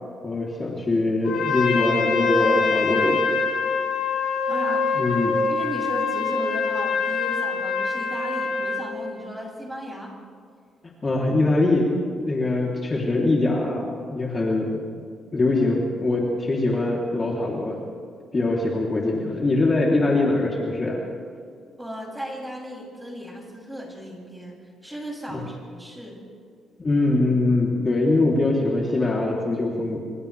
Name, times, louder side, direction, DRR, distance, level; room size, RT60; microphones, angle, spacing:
voice 1, 0.2-3.2 4.9-5.4 11.0-11.9 12.2-14.7 15.3-17.8 18.3-21.0 25.3-25.4 26.8-30.0, left 2 dB, 30° left, -3 dB, 3.5 m, -22 dB
Trumpet, 1.2-8.9, left 5 dB, 80° left, 5.2 m, -24 dB
voice 2, 4.5-5.0 5.5-10.2 21.8-26.2, equal, 10° right, -2 dB, 7.5 m, -35 dB
27.5 x 27.5 x 3.5 m, 2.2 s
cardioid pair, 90°, 0 cm